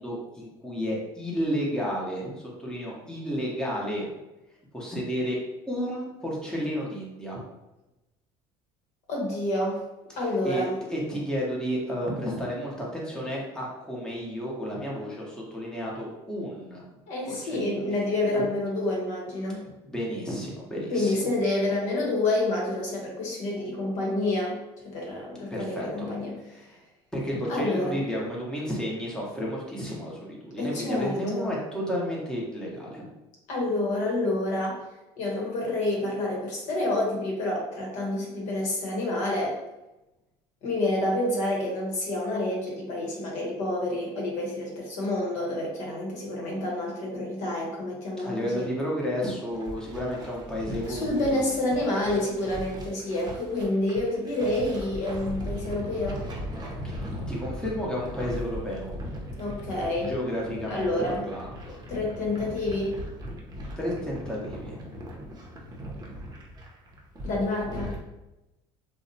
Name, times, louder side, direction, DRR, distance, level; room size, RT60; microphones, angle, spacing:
voice 1, 0.0-4.1 4.7-5.4 5.7-7.4 10.2-16.8 17.3-18.4 19.9-21.2 25.5-26.1 26.4-26.8 27.1-33.0 48.2-51.4 51.8-52.2 56.8-58.9 60.1-61.8 63.8-64.8, equal, 5° left, -4 dB, 0.8 m, -32 dB
voice 2, 9.1-9.8 10.2-10.7 17.1-19.6 20.9-24.6 24.8-26.3 27.5-28.0 30.6-31.5 33.5-34.8 35.2-39.5 40.6-48.7 50.9-56.2 59.4-60.1 60.7-61.2 61.9-62.9 67.2-67.9, left 2 dB, 65° left, -2 dB, 0.9 m, -28 dB
sound 1, 49.5-68.0, equal, 30° right, 0.7 m, -39 dB
2.6 x 2.0 x 2.7 m, 0.99 s
supercardioid pair, 80°, 13 cm